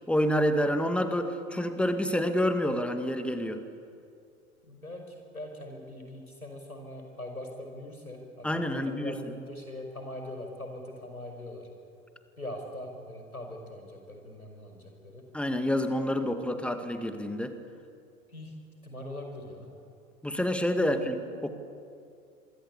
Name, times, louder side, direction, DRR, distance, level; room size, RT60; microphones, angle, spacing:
voice 1, 0.1-3.6 8.4-9.3 15.3-17.5 20.2-21.5, equal, 5° left, 8 dB, 2.1 m, -28 dB
voice 2, 4.7-11.7 12.4-15.2 18.3-18.5 18.8-19.7 20.8-21.0, left 1 dB, 90° left, 3 dB, 5.3 m, -42 dB
26.5 x 22.5 x 8.6 m, 2.4 s
figure-of-eight pair, 90°, 42 cm